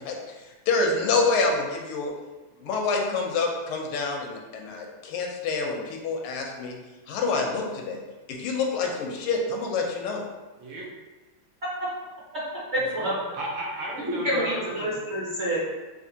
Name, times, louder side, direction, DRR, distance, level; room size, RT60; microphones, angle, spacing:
voice 1, 0.0-2.1 2.6-6.8 7.1-8.0 8.3-10.2, left 3 dB, 90° left, 1 dB, 1.5 m, -27 dB
voice 2, 10.6-10.9 13.0-14.9, right 1 dB, 70° right, -3 dB, 1.3 m, -34 dB
voice 3, 12.7-13.2 14.1-15.6, equal, 50° right, -9 dB, 0.8 m, -27 dB
5.1 x 2.4 x 2.7 m, 1.2 s
omnidirectional pair, 2.4 m